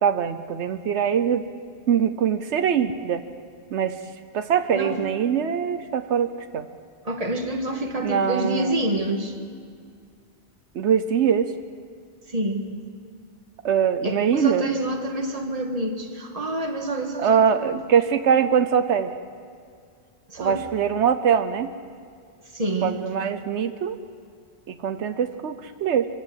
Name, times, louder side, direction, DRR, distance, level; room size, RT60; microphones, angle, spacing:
voice 1, 0.0-1.4 1.9-3.2 3.7-4.0 4.3-6.7 8.0-8.7 10.7-11.5 13.6-14.7 17.2-19.1 20.4-21.7 22.8-24.0 24.7-26.1, right 7 dB, 85° right, 10 dB, 1.1 m, -22 dB
voice 2, 4.7-5.0 7.1-9.3 12.3-12.7 14.0-17.7 20.3-20.6 22.5-23.0, right 1 dB, 35° right, 4 dB, 1.8 m, -27 dB
24.5 x 15.5 x 7.9 m, 2.2 s
omnidirectional pair, 1.1 m